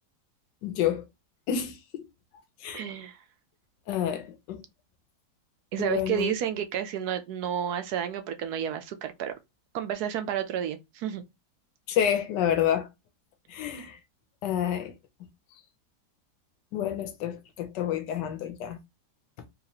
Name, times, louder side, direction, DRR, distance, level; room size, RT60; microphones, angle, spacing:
voice 1, 0.6-1.0 1.5-2.0 2.6-2.8 3.9-4.6 5.8-6.3 11.9-12.9 13.5-14.0 14.4-14.9 16.7-18.8, left 9 dB, 90° left, 1.3 m, -29 dB
voice 2, 2.7-3.2 5.7-9.3 9.7-11.2, right 9 dB, 70° right, 1.1 m, -31 dB
3.9 x 3.0 x 2.8 m
omnidirectional pair, 1.8 m